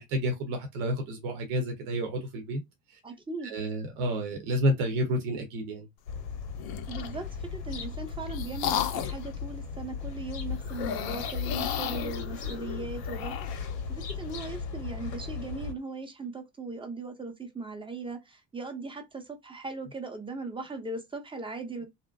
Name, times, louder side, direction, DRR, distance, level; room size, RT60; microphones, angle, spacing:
voice 1, 0.0-2.6 2.9-3.0 3.4-5.9, equal, 70° right, 0.9 m, -30 dB
voice 2, 3.0-3.6 6.9-21.8, right 3 dB, 10° right, 0.7 m, -39 dB
sound 1, 6.1-15.7, left 6 dB, 80° left, 0.9 m, -37 dB
sound 2, 6.6-7.2 7.8-9.3 10.7-13.7, left 10 dB, 50° left, 0.5 m, -34 dB
2.5 x 2.1 x 2.3 m
hypercardioid pair, 70°, 48 cm